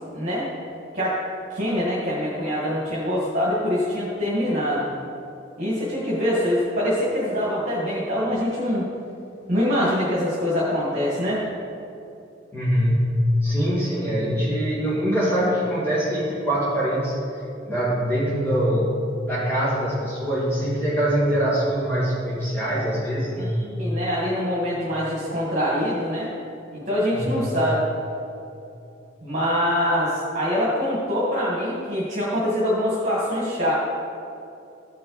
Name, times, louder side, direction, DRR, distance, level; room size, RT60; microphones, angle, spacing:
voice 1, 0.1-0.5 0.9-1.2 1.5-4.9 5.6-8.9 9.5-11.5 13.6-13.7 23.4-26.3 26.7-27.8 29.2-33.7, equal, 45° right, -7 dB, 1.8 m, -24 dB
voice 2, 12.5-19.0 19.3-23.6 27.1-27.3, equal, 15° left, -9 dB, 1.9 m, -23 dB
15.0 x 5.6 x 4.1 m, 2.7 s
head